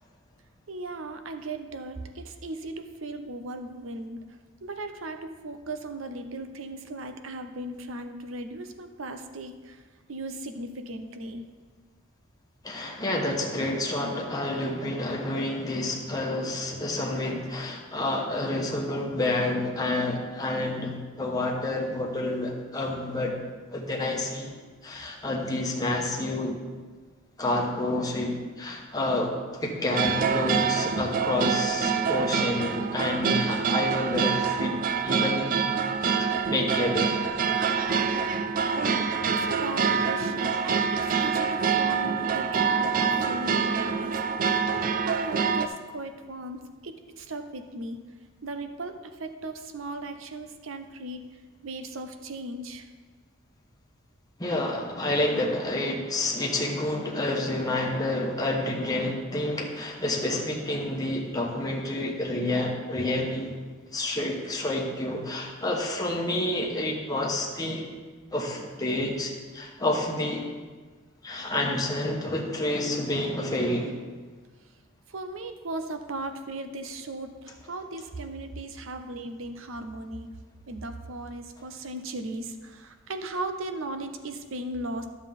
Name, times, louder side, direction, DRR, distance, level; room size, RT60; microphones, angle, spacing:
voice 1, 0.7-4.2 4.6-9.8 10.1-11.4 39.3-44.2 44.6-48.0 48.4-51.3 51.6-52.9 75.1-80.3 80.7-85.1, right 2 dB, 70° right, 8 dB, 0.7 m, -37 dB
voice 2, 12.6-23.4 23.7-24.5 24.8-26.6 27.4-34.7 35.0-35.6 36.0-37.1 54.4-63.5 63.9-67.8 68.3-70.4 71.2-73.9, left 1 dB, 20° left, -1 dB, 1.1 m, -29 dB
sound 1, 29.9-45.7, right 6 dB, 40° right, 0.4 m, -26 dB
11.0 x 7.3 x 3.7 m, 1.4 s
head